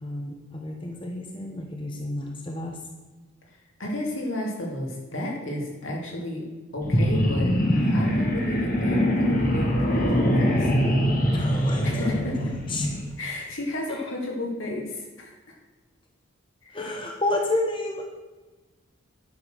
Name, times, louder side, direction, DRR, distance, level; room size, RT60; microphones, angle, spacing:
voice 1, 0.0-2.8 11.3-12.1 12.7-12.9 13.9-14.0 16.7-18.0, left 2 dB, 25° left, 1 dB, 1.0 m, -30 dB
voice 2, 3.5-6.5 6.7-7.5 7.8-10.7 11.8-12.5 13.2-15.6 16.6-16.8, left 1 dB, 80° left, -1 dB, 3.0 m, -32 dB
sound 1, 6.8-13.0, equal, 40° left, 1.6 m, -23 dB
10.5 x 7.1 x 6.5 m, 1.2 s
head